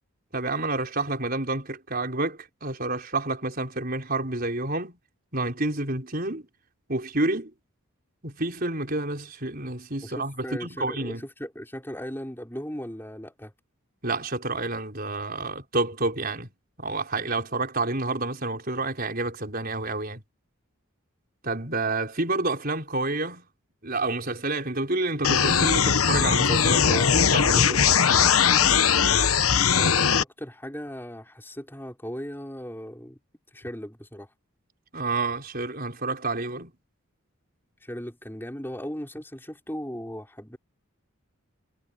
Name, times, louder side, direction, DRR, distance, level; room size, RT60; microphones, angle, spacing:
voice 1, 0.3-5.0 5.3-6.4 6.9-7.5 8.2-10.3 10.6-11.2 14.0-16.5 16.8-20.2 21.4-23.5 23.8-27.0 27.3-27.9 34.9-36.7, right 2 dB, 40° right, 5.7 m, -29 dB
voice 2, 10.0-13.5 26.9-27.8 29.7-33.2 33.5-34.3 37.8-40.6, equal, 10° left, 5.6 m, -37 dB
sound 1, 25.2-30.2, left 7 dB, 80° left, 1.1 m, -20 dB
head